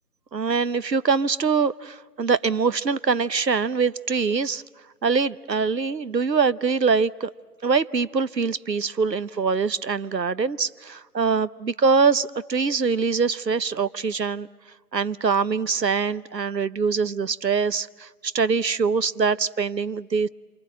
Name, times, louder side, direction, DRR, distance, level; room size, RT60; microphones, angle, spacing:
voice 1, 0.3-4.6 5.0-7.3 7.6-14.5 14.9-20.3, right 5 dB, 85° right, 16 dB, 0.9 m, -23 dB
27.5 x 23.5 x 7.6 m, 1.5 s
figure-of-eight pair, 155°, 49 cm